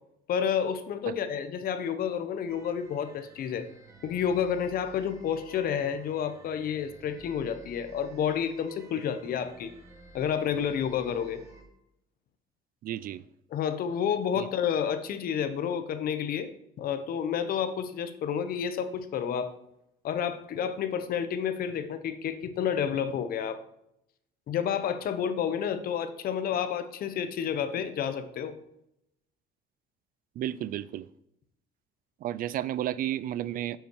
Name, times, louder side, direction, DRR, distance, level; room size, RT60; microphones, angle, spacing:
voice 1, 0.3-3.7 4.0-9.7 10.1-11.4 13.5-16.5 16.8-19.5 20.0-23.6 24.5-28.5, left 8 dB, 60° left, 10 dB, 0.9 m, -30 dB
sound 1, 2.5-11.6, right 3 dB, 20° right, 1.8 m, -53 dB
voice 2, 12.8-13.2 14.4-14.5 30.4-31.1 32.2-33.8, right 12 dB, 55° right, 18 dB, 0.4 m, -32 dB
8.8 x 5.7 x 4.6 m, 0.80 s
cardioid pair, 110°, 17 cm